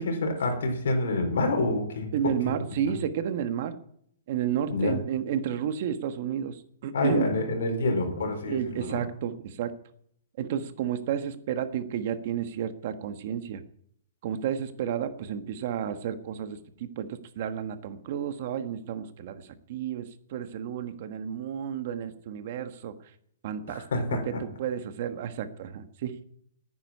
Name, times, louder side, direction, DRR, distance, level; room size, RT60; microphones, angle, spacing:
voice 1, 0.0-2.1 4.7-5.0 6.9-9.0 23.7-24.2, left 2 dB, 80° left, 3 dB, 4.2 m, -27 dB
voice 2, 2.1-3.8 4.3-7.3 8.5-9.8 10.4-13.6 14.2-22.9 23.4-23.8 24.1-26.2, right 9 dB, 40° right, 9 dB, 1.2 m, -31 dB
9.9 x 9.6 x 9.9 m, 0.69 s
hypercardioid pair, 170°, 0 cm